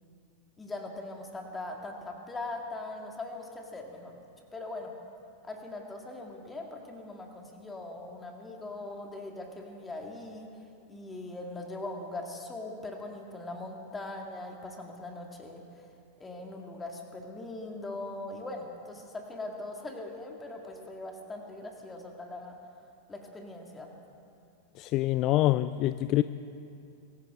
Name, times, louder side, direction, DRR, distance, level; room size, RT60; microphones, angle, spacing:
voice 1, 0.6-4.2 4.5-4.9 5.4-10.6 10.9-15.8 16.2-22.6 23.1-23.9, left 2 dB, 15° left, 2 dB, 2.2 m, -41 dB
voice 2, 24.8-26.2, left 15 dB, 40° left, 13 dB, 0.4 m, -25 dB
24.0 x 14.5 x 3.7 m, 2.6 s
figure-of-eight pair, 90°, 0 cm